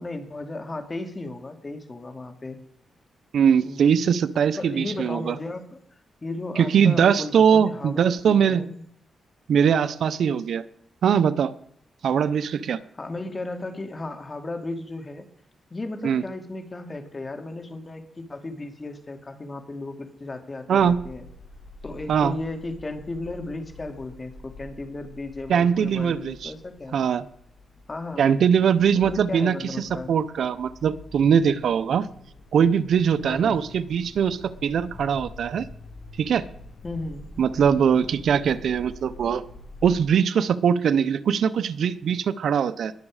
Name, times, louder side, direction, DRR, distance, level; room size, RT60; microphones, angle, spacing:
voice 1, 0.0-2.6 3.6-4.0 4.6-5.8 6.2-8.9 12.9-15.3 15.7-21.3 21.8-27.0 27.9-28.3 29.0-30.1 33.2-33.6 36.8-37.3 37.9-38.0, left 2 dB, 30° left, 7 dB, 2.4 m, -35 dB
voice 2, 3.3-5.3 6.6-8.6 9.5-10.6 11.0-11.5 12.0-12.8 16.0-16.2 20.7-21.0 22.1-22.3 25.5-26.5 26.9-27.2 28.2-32.1 32.5-35.6 36.2-36.4 37.4-39.4 39.8-42.9, right 7 dB, 75° right, 15 dB, 0.8 m, -21 dB
sound 1, 20.8-40.0, left 2 dB, 70° left, 4.8 m, -46 dB
21.0 x 7.3 x 4.9 m, 0.67 s
cardioid pair, 80°, 0 cm